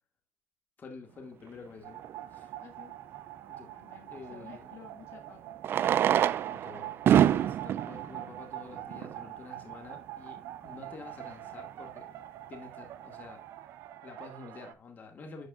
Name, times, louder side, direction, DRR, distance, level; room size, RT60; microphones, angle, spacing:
voice 1, 0.8-2.0 2.3-2.6 3.5-3.7 4.1-4.8 6.4-12.1 12.5-13.4 14.0-15.5, left 4 dB, 35° left, 2.1 m, -48 dB
sound 1, 1.8-14.7, right 13 dB, 75° right, 0.8 m, -45 dB
Fireworks, 2.0-2.1 4.4-4.5 5.6-9.3 10.1-10.2 10.4-10.5 10.7-10.8 11.3-11.5, right 10 dB, 50° right, 0.3 m, -26 dB
voice 2, 2.6-2.9 3.7-5.6, left 8 dB, 60° left, 1.8 m, -53 dB
12.0 x 4.7 x 2.4 m
cardioid pair, 120°, 5 cm